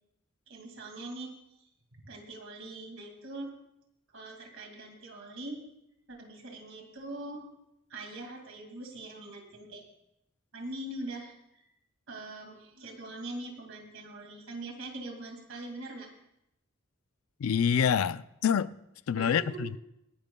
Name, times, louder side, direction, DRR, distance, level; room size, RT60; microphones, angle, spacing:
voice 1, 0.5-1.3 1.9-3.5 4.1-5.6 6.1-7.5 7.9-9.9 10.5-11.6 12.1-16.1 19.2-19.7, right 2 dB, 60° right, 2.2 m, -42 dB
voice 2, 17.4-18.7 19.1-19.8, left 7 dB, 75° left, 0.4 m, -26 dB
26.5 x 10.5 x 2.3 m
head